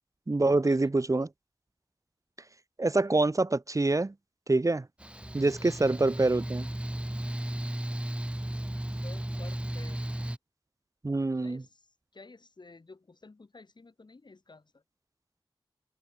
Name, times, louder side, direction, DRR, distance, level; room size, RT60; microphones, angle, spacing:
voice 1, 0.3-1.3 2.8-4.1 4.5-4.9 5.3-6.7 11.0-11.6, right 2 dB, 35° right, 1.4 m, -26 dB
Mechanical fan, 5.0-10.4, right 1 dB, 10° right, 1.2 m, -35 dB
voice 2, 5.8-6.4 8.9-10.3 11.4-11.9 12.1-14.8, left 3 dB, 55° left, 5.0 m, -52 dB
open air
wide cardioid pair, 65°, 9 cm